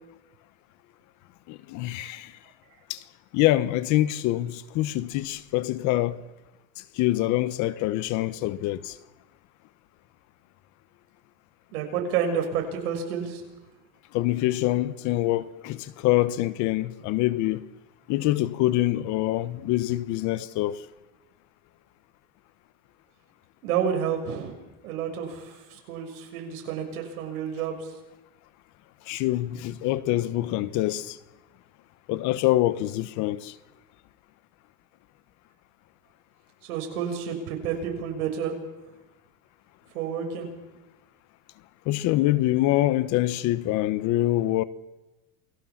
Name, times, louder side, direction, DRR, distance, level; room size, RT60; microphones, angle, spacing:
voice 1, 1.5-2.3 2.9-3.0 3.3-6.2 6.9-9.0 14.1-17.6 18.1-20.9 29.1-31.2 32.1-33.6 41.9-44.6, left 15 dB, 40° left, 1.1 m, -25 dB
voice 2, 11.7-13.4 23.6-24.5 24.8-27.9 36.6-38.5 39.9-40.5, right 7 dB, 90° right, 6.7 m, -30 dB
28.5 x 19.0 x 7.3 m
supercardioid pair, 165°, 43 cm